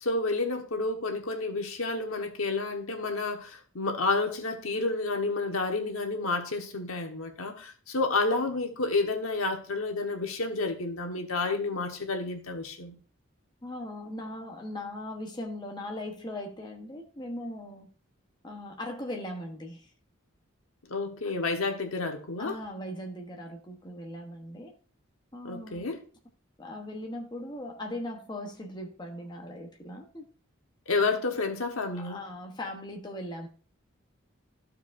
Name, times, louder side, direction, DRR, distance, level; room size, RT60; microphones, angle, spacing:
voice 1, 0.0-12.9 20.9-22.6 25.4-26.0 30.9-32.2, left 3 dB, 80° left, 1.2 m, -30 dB
voice 2, 13.6-17.9 18.4-19.9 22.4-24.7 25.3-25.9 26.6-30.2 31.9-33.5, left 1 dB, 20° left, 0.9 m, -39 dB
14.0 x 4.7 x 2.5 m
head